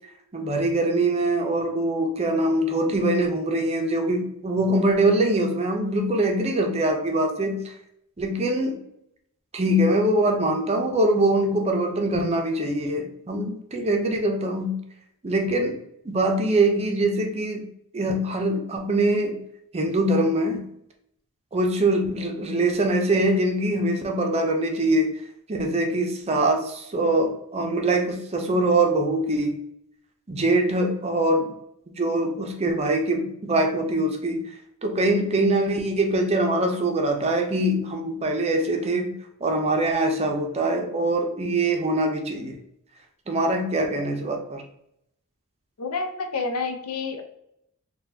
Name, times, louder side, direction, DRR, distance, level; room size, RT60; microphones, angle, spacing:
voice 1, 0.3-7.7 8.2-8.8 9.5-14.8 15.2-15.8 16.0-17.7 17.9-19.4 19.7-20.6 21.5-25.1 25.5-29.5 30.3-31.5 32.0-34.5 34.8-39.1 39.4-42.6 43.3-44.6, right 1 dB, 30° right, 3 dB, 0.5 m, -23 dB
voice 2, 45.8-47.2, left 4 dB, 75° left, 5 dB, 0.6 m, -29 dB
4.0 x 2.2 x 2.7 m, 0.76 s
head